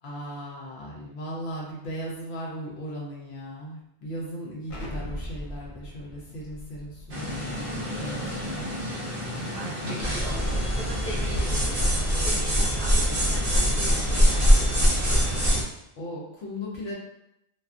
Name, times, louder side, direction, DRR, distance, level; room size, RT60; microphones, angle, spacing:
voice 1, 0.0-8.7 9.0-10.1 16.0-16.9, equal, 75° left, -4 dB, 0.8 m, -37 dB
Explosion, 4.7-9.4, equal, 50° left, 0.4 m, -41 dB
sound 1, 7.1-15.6, equal, 45° right, 0.5 m, -24 dB
voice 2, 9.2-14.7, equal, 15° left, -8 dB, 0.8 m, -41 dB
2.4 x 2.3 x 2.3 m, 0.82 s
omnidirectional pair, 1.1 m